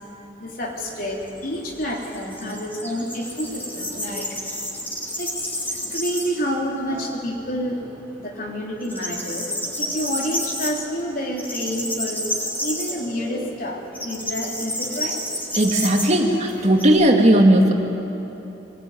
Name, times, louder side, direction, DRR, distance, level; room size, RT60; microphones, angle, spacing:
voice 1, 0.4-4.4 5.2-7.8 8.2-9.5 9.8-12.3 12.6-15.2, equal, 50° left, 0 dB, 3.6 m, -29 dB
sound 1, 0.6-6.5 6.8-6.9 7.3-8.1 8.4-16.9, left 1 dB, 10° left, 3.8 m, -31 dB
voice 2, 15.5-17.7, right 1 dB, 40° right, 2 dB, 2.4 m, -16 dB
23.5 x 21.5 x 9.5 m, 3.0 s
head